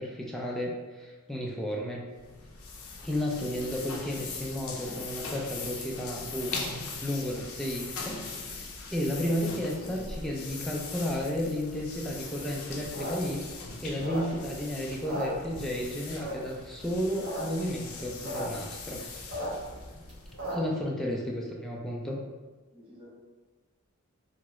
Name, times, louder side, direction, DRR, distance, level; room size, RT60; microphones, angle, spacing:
voice 1, 0.0-2.0 3.0-6.5 7.0-8.2 8.5-19.0 20.5-22.2, equal, ahead, -3 dB, 0.4 m, -33 dB
sound 1, 2.1-20.6, left 4 dB, 85° left, 0.5 m, -41 dB
sound 2, 12.9-14.6 14.9-15.8 16.2-16.6 17.0-17.4 17.7-17.8 17.9-18.4 18.8-20.8, equal, 75° right, 1.1 m, -36 dB
voice 2, 20.8-21.6 22.7-23.1, left 1 dB, 25° right, -7 dB, 0.8 m, -48 dB
2.9 x 2.3 x 3.0 m, 1.3 s
head